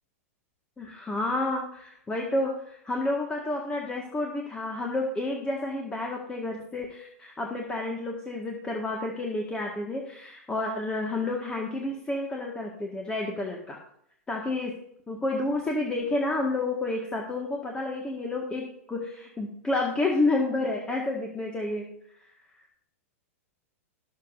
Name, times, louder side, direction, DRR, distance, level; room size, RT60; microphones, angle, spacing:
voice 1, 0.8-13.8 14.3-14.7 15.1-21.9 22.1-22.6, left 2 dB, 15° left, 0 dB, 1.7 m, -30 dB
20.5 x 7.3 x 2.6 m, 0.71 s
hypercardioid pair, 130°, 8 cm